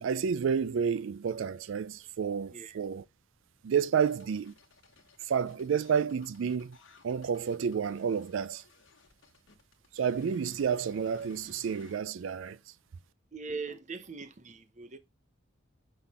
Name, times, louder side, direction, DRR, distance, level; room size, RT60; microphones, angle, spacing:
voice 1, 0.0-3.0 3.6-4.5 5.2-6.8 7.0-8.6 9.9-12.6, right 7 dB, 75° right, 0.4 m, -30 dB
voice 2, 2.5-2.8 13.3-15.0, right 4 dB, 40° right, 0.7 m, -41 dB
sound 1, 4.0-12.0, left 3 dB, 70° left, 1.3 m, -58 dB
5.9 x 5.7 x 3.4 m
head